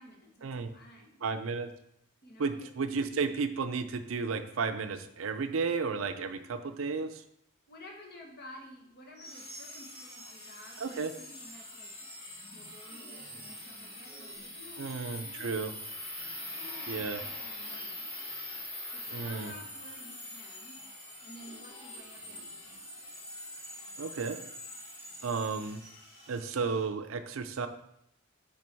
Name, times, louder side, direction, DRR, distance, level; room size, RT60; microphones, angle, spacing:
voice 1, 0.0-1.2 2.2-2.7 7.7-12.1 12.5-15.7 16.5-18.4 18.9-20.8 21.2-22.8, left 1 dB, 50° left, 1 dB, 1.4 m, -52 dB
voice 2, 1.2-1.7 2.4-7.2 10.8-11.1 14.8-15.7 16.9-17.2 19.1-19.5 24.0-24.4 25.2-25.8 26.3-27.7, right 4 dB, 70° right, 9 dB, 0.5 m, -33 dB
sound 1, 9.2-26.8, left 1 dB, 30° left, 2.1 m, -44 dB
6.1 x 4.7 x 4.5 m, 0.76 s
head